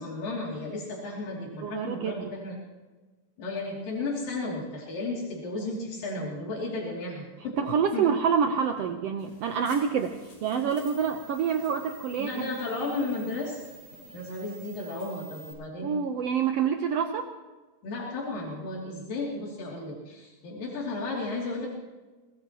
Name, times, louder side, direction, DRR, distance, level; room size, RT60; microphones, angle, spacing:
voice 1, 0.0-2.6 3.4-7.6 7.9-8.1 12.2-13.6 13.9-15.9 17.8-21.7, left 2 dB, 75° left, -4 dB, 4.6 m, -34 dB
voice 2, 1.6-2.3 7.6-12.5 15.8-17.3, right 7 dB, 75° right, 5 dB, 1.4 m, -27 dB
sound 1, 9.2-15.5, right 3 dB, 50° left, 7.2 m, -50 dB
23.5 x 20.0 x 3.0 m, 1.2 s
omnidirectional pair, 4.0 m